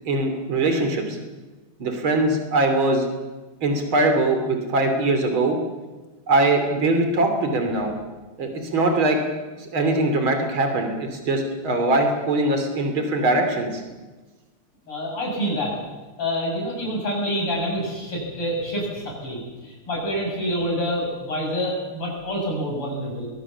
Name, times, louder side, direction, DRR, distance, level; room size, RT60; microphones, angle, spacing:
voice 1, 0.1-1.2 1.8-3.1 3.6-5.6 6.3-7.9 8.4-9.2 9.7-13.8, right 2 dB, 65° right, 5 dB, 3.9 m, -21 dB
voice 2, 14.9-15.8 16.2-23.3, equal, 90° left, -1 dB, 7.3 m, -27 dB
22.0 x 21.5 x 7.2 m, 1.2 s
omnidirectional pair, 2.4 m